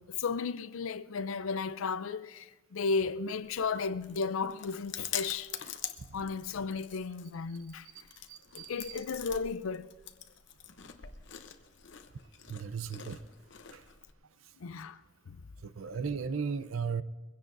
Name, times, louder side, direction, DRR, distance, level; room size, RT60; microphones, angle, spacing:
voice 1, 0.0-5.5 6.1-7.9 8.5-9.9 14.6-15.0 15.3-15.4, left 5 dB, 85° left, 0.5 m, -34 dB
Chewing mastication, 3.4-14.1, left 9 dB, 60° left, 0.8 m, -45 dB
voice 2, 8.3-8.9 12.5-13.2 13.7-13.8 15.6-17.0, right 5 dB, 85° right, 0.6 m, -36 dB
22.5 x 16.0 x 2.6 m
head